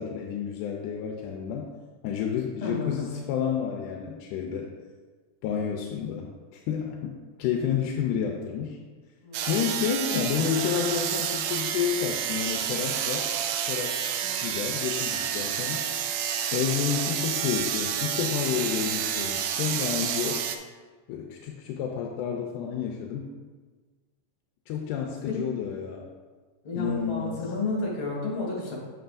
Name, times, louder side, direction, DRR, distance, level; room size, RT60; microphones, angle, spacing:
voice 1, 0.0-1.7 2.0-4.7 5.4-7.1 7.4-8.8 9.5-13.4 13.7-14.0 14.4-15.8 16.5-20.4 21.1-23.3 24.7-26.1 26.7-27.4, left 8 dB, 85° left, 1 dB, 2.1 m, -30 dB
voice 2, 2.6-3.1 9.2-9.6 10.1-10.2 25.3-25.4 26.6-28.7, left 3 dB, 50° left, -4 dB, 3.0 m, -31 dB
sound 1, 9.3-20.6, right 9 dB, 85° right, 2.1 m, -29 dB
7.8 x 7.6 x 2.6 m, 1.4 s
omnidirectional pair, 3.6 m